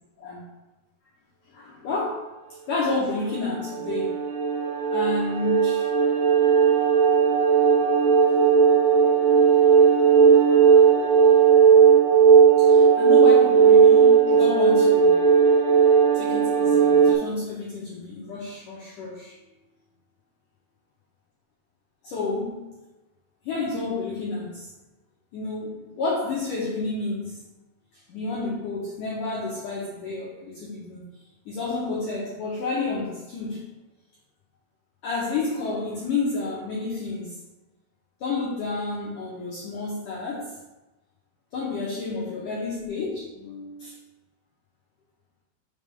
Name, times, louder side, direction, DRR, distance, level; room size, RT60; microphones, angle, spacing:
voice 1, 1.5-2.3 2.7-4.2 4.9-5.9 6.5-6.8 10.3-10.8 12.6-15.1 16.1-19.3 22.0-22.7 23.4-24.7 25.3-27.4 28.1-31.0 31.5-33.7 35.0-37.4 38.2-40.6 41.5-44.0, left 3 dB, 85° left, -5 dB, 1.8 m, -30 dB
sound 1, 3.0-17.1, right 6 dB, 75° right, 2.7 m, -17 dB
7.1 x 6.4 x 3.5 m, 1.0 s
omnidirectional pair, 5.6 m